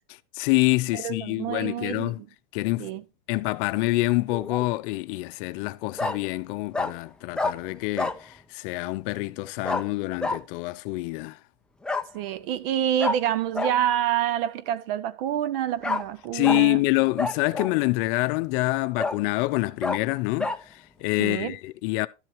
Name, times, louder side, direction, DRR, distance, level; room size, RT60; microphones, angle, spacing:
voice 1, 0.3-2.2 2.5-2.9 3.3-11.4 16.3-22.1, left 21 dB, 50° left, 0.6 m, -26 dB
voice 2, 0.9-2.3 2.8-3.0 12.1-16.8 21.2-21.5, right 11 dB, 55° right, 0.9 m, -27 dB
Bark, 4.3-4.7 6.0-6.2 6.7-6.9 7.3-7.5 8.0-8.2 9.6-9.8 10.2-10.4 11.8-12.1 13.0-13.2 13.5-13.7 15.8-16.0 16.4-16.6 17.2-17.8 18.3-18.4 19.0-19.2 19.8-20.0 20.4-20.6, left 3 dB, 5° left, 0.4 m, -27 dB
12.5 x 7.6 x 3.1 m
hypercardioid pair, 120°, 34 cm